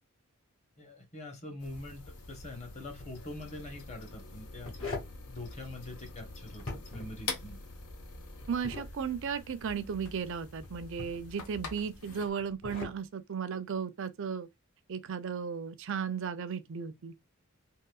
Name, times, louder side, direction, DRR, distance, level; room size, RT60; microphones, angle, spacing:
voice 1, 0.8-5.0 5.2-7.6, left 2 dB, 30° left, 0.9 m, -44 dB
sound 1, 1.6-12.3, left 3 dB, 90° left, 0.8 m, -45 dB
sound 2, 2.8-3.1 4.3-5.2 6.6-7.2 8.4-8.9 10.6-11.3 12.4-13.0, left 3 dB, 60° left, 1.2 m, -41 dB
voice 2, 8.5-14.5 14.9-17.1, right 6 dB, 60° right, 0.4 m, -35 dB
3.7 x 2.6 x 2.3 m
head